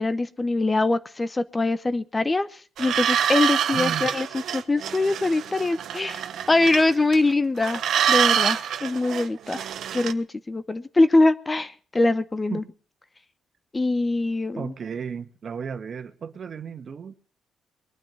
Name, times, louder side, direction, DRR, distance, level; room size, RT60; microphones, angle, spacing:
voice 1, 0.0-6.2 6.5-12.6 13.7-14.7, left 2 dB, 20° left, 14 dB, 0.9 m, -23 dB
sound 1, 2.8-7.3 7.6-10.1, right 9 dB, 70° right, 1.0 m, -26 dB
voice 2, 3.7-4.1 12.5-12.6 14.5-17.1, right 6 dB, 50° right, 9 dB, 1.7 m, -34 dB
22.0 x 9.2 x 7.1 m, 0.43 s
cardioid pair, 90°, 0 cm